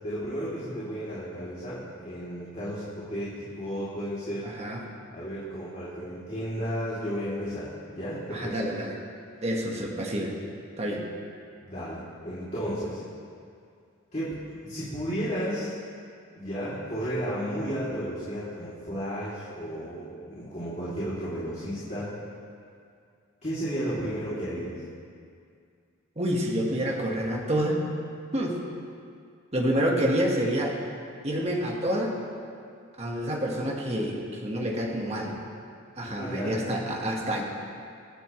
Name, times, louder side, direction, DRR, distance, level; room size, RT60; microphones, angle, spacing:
voice 1, 0.0-4.5 5.1-8.7 11.6-13.0 14.1-15.8 16.4-22.1 23.4-24.8 36.1-36.8, equal, 35° left, -11 dB, 3.1 m, -33 dB
voice 2, 4.4-4.8 8.3-9.0 9.4-10.3 10.8-11.0 26.2-27.8 28.3-28.6 29.5-30.8 31.2-32.2 33.0-35.3 36.0-37.4, equal, 30° right, -1 dB, 1.6 m, -28 dB
26.5 x 9.9 x 3.3 m, 2.3 s
head